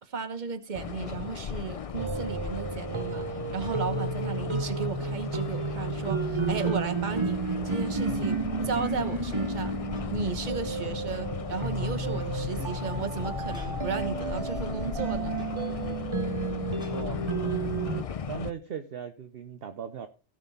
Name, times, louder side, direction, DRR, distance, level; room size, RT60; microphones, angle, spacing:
voice 1, 0.0-3.2 3.5-8.4 8.6-9.8 10.1-15.4, right 5 dB, 45° right, 1.2 m, -34 dB
sound 1, 0.7-18.5, left 7 dB, 45° left, 0.5 m, -37 dB
sound 2, 2.0-18.0, right 4 dB, 30° right, 0.8 m, -32 dB
sound 3, 3.6-4.0 4.5-6.0 6.4-7.1 7.5-8.2 8.6-10.4 10.8-10.9 11.9-13.9 15.3-15.6 16.8-17.1, left 1 dB, 5° right, 2.4 m, -53 dB
voice 2, 16.9-17.4 18.3-20.1, right 8 dB, 60° right, 0.9 m, -38 dB
16.5 x 6.4 x 4.1 m
omnidirectional pair, 1.2 m